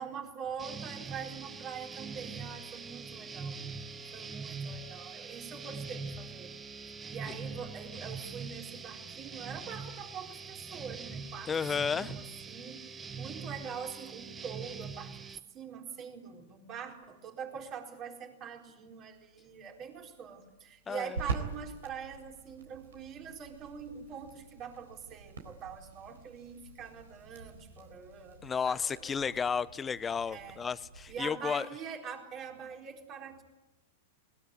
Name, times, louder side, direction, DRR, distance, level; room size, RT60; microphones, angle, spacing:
voice 1, 0.0-3.6 4.1-6.5 7.1-11.5 11.8-29.3 30.3-30.6 31.1-33.4, right 7 dB, 35° right, 2 dB, 4.3 m, -44 dB
sound 1, 0.6-15.4, right 4 dB, 20° right, 1.3 m, -43 dB
voice 2, 11.5-12.1 20.9-21.2 28.4-31.7, left 6 dB, 20° left, 16 dB, 0.9 m, -32 dB
sound 2, 19.1-31.3, right 4 dB, 80° right, 3.9 m, -45 dB
21.0 x 20.0 x 9.6 m, 1.0 s
hypercardioid pair, 105°, 0 cm